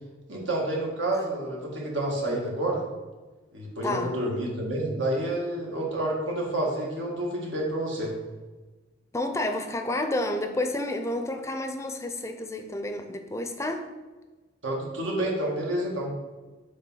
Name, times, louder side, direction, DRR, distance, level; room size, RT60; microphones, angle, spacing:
voice 1, 0.3-2.8 3.5-8.1 14.6-16.1, right 1 dB, 85° right, -2 dB, 1.6 m, -29 dB
voice 2, 3.8-4.2 9.1-13.9, left 1 dB, 15° left, 6 dB, 0.4 m, -30 dB
5.1 x 3.5 x 5.5 m, 1.2 s
head